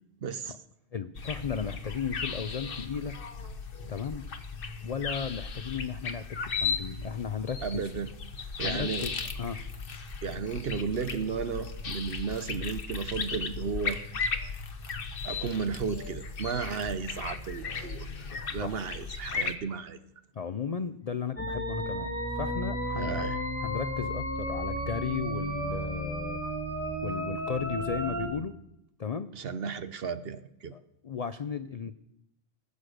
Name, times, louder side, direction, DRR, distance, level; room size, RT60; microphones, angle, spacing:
voice 1, 0.2-0.5 7.6-8.1 8.6-9.1 10.2-14.0 15.2-20.0 22.9-23.4 29.3-30.7, right 6 dB, 55° right, 13 dB, 0.8 m, -34 dB
voice 2, 0.9-3.1 3.9-4.2 4.8-7.8 8.6-9.6 18.3-18.8 20.3-22.1 22.3-23.3 23.6-26.4 27.0-28.5 29.0-29.3 30.7-31.9, left 6 dB, 65° left, 12 dB, 0.3 m, -35 dB
sound 1, 1.1-19.6, left 5 dB, 45° left, 1.1 m, -36 dB
sound 2, 21.4-28.3, equal, 10° left, 2.1 m, -33 dB
19.0 x 8.2 x 6.5 m, 0.85 s
omnidirectional pair, 1.4 m